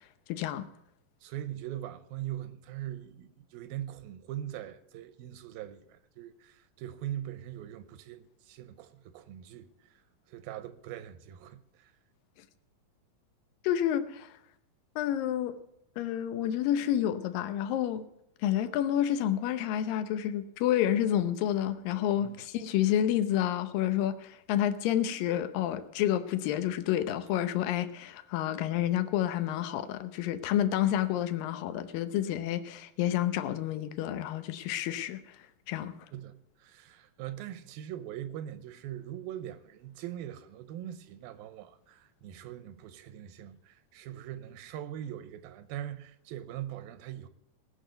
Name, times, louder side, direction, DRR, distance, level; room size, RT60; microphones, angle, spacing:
voice 1, 0.3-0.7 13.6-14.3 15.0-15.6 16.0-18.0 18.4-35.2 35.7-35.9, left 11 dB, 80° left, 2.5 m, -29 dB
voice 2, 1.2-9.7 10.3-11.9 22.2-22.4 30.9-31.0 36.1-47.3, right 12 dB, 85° right, 2.6 m, -41 dB
19.0 x 6.6 x 8.0 m
omnidirectional pair, 4.1 m